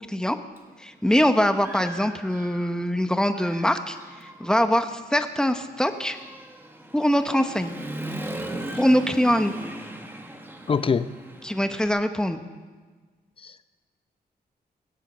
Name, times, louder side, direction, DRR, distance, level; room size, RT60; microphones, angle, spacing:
Human voice / Motorcycle, 0.6-0.7 1.2-2.9 3.3-11.9, right 1 dB, 15° right, 1.4 m, -38 dB
voice 1, 0.8-6.2 6.9-7.8 8.7-9.5 11.4-12.4, equal, 5° left, 7 dB, 0.9 m, -23 dB
voice 2, 10.7-11.1 13.4-13.6, left 5 dB, 35° left, 13 dB, 0.6 m, -24 dB
22.5 x 8.2 x 6.6 m, 1.4 s
wide cardioid pair, 120°, 17 cm